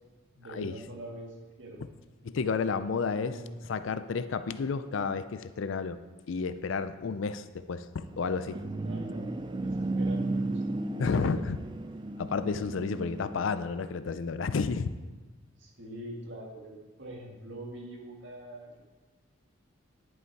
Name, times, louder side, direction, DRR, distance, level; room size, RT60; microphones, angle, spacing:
voice 1, 0.3-1.8 3.1-3.5 8.8-11.1 11.3-11.4 15.6-18.8, right 1 dB, 65° right, -1 dB, 1.9 m, -44 dB
voice 2, 2.2-3.3 3.7-6.0 6.3-8.6 11.0-11.6 12.2-14.9, left 5 dB, 70° left, 12 dB, 0.4 m, -31 dB
sound 1, 8.0-13.6, right 2 dB, 25° right, 0.3 m, -34 dB
10.5 x 5.5 x 4.7 m, 1.3 s
head